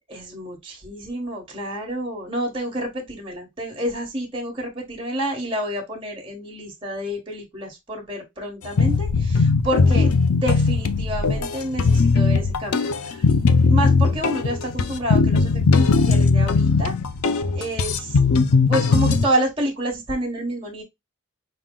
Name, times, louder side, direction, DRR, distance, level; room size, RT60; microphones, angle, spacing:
voice 1, 0.1-13.3 13.7-16.9 17.5-18.2 18.5-20.8, right 1 dB, 25° right, 1.3 m, -29 dB
sound 1, 8.8-19.3, left 4 dB, 75° left, 0.5 m, -19 dB
5.8 x 2.1 x 3.7 m
head